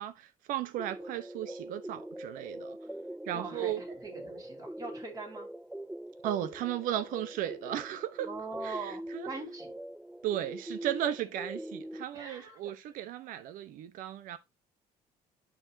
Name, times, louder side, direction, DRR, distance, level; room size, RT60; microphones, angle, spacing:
voice 1, 0.0-2.8 3.3-3.8 6.2-8.3 8.6-9.3 10.2-14.4, right 12 dB, 70° right, 1.0 m, -35 dB
sound 1, 0.8-12.0, right 1 dB, 5° right, 0.3 m, -43 dB
voice 2, 3.3-5.5 8.2-9.8 12.1-12.6, right 3 dB, 25° right, 4.3 m, -42 dB
11.5 x 4.3 x 2.8 m
cardioid pair, 110°, 14 cm